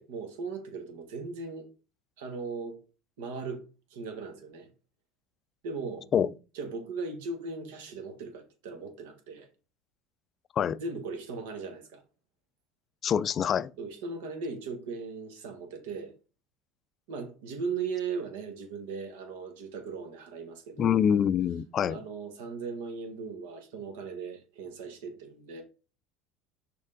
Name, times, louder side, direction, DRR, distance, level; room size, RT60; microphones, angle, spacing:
voice 1, 0.0-1.7 2.2-2.8 3.2-3.6 3.9-4.7 5.6-6.1 6.5-9.5 10.8-12.0 13.8-16.1 17.1-21.0 21.9-25.6, right 4 dB, 90° right, 1.6 m, -38 dB
voice 2, 13.0-13.7 20.8-22.0, left 8 dB, 35° left, 0.3 m, -25 dB
6.5 x 4.2 x 3.7 m
supercardioid pair, 135°, 0 cm